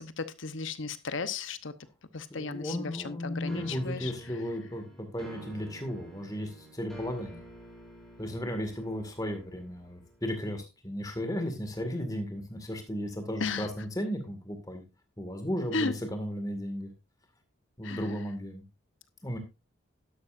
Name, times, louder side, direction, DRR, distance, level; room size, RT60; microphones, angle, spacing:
voice 1, 0.0-1.7 2.1-4.1 13.4-13.7 15.7-15.9 17.8-18.1, left 4 dB, 70° left, 13 dB, 1.0 m, -34 dB
voice 2, 2.3-7.4 8.2-14.8 15.2-16.9 17.8-18.6 19.2-19.4, equal, 15° left, 6 dB, 2.0 m, -35 dB
sound 1, 3.5-10.3, right 1 dB, ahead, 4.0 m, -49 dB
12.0 x 11.0 x 2.6 m, 0.25 s
head